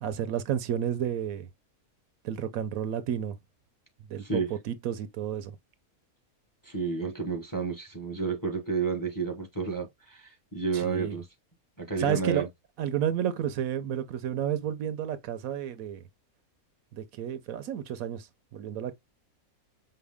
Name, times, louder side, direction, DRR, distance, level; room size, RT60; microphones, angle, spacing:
voice 1, 0.0-1.5 2.2-3.3 4.1-4.2 4.7-5.6 10.7-11.2 12.0-12.5 12.8-16.0 16.9-18.3 18.5-18.9, right 9 dB, 75° right, 1.0 m, -31 dB
voice 2, 4.2-4.5 6.6-11.3 11.8-12.5, right 4 dB, 15° left, 0.9 m, -31 dB
5.7 x 2.1 x 3.4 m
omnidirectional pair, 1.5 m